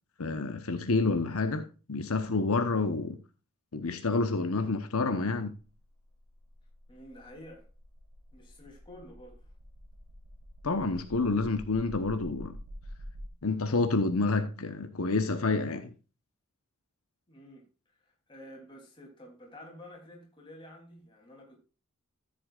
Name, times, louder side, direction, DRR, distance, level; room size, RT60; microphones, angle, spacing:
voice 1, 0.2-3.2 3.7-5.5 10.6-12.6 13.4-15.9, left 3 dB, 75° left, 1.0 m, -28 dB
sound 1, 5.6-13.3, equal, 55° right, 5.0 m, -48 dB
voice 2, 6.9-7.7 8.3-9.5 17.3-17.7 18.0-21.6, left 1 dB, 20° left, 3.0 m, -50 dB
13.5 x 7.9 x 2.4 m
head